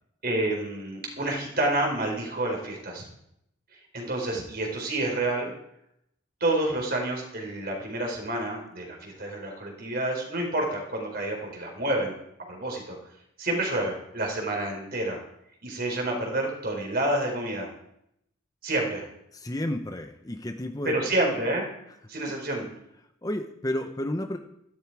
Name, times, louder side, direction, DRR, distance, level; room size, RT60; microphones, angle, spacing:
voice 1, 0.2-3.1 3.9-5.5 6.4-12.1 12.5-13.0 13.4-15.2 15.6-17.7 18.6-19.0 20.8-21.7 22.1-22.7, right 1 dB, 50° right, 1 dB, 4.4 m, -28 dB
voice 2, 19.3-21.0 23.2-24.4, left 1 dB, 20° left, 6 dB, 0.8 m, -31 dB
14.0 x 13.0 x 4.8 m, 0.77 s
head